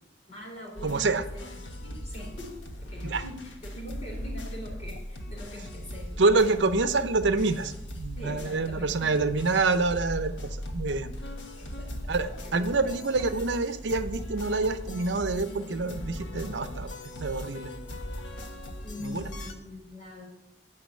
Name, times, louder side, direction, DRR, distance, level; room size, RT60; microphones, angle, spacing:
voice 1, 0.3-1.5 1.8-6.6 8.2-9.2 11.5-12.8 18.8-20.2, left 1 dB, 40° left, -2 dB, 4.1 m, -43 dB
sound 1, 0.7-19.5, equal, 80° left, 1.2 m, -39 dB
voice 2, 0.8-1.2 3.0-3.2 6.2-11.1 12.1-16.9 17.2-17.7 19.0-19.3, right 3 dB, 75° right, 10 dB, 0.7 m, -27 dB
9.5 x 6.0 x 8.4 m, 0.88 s
head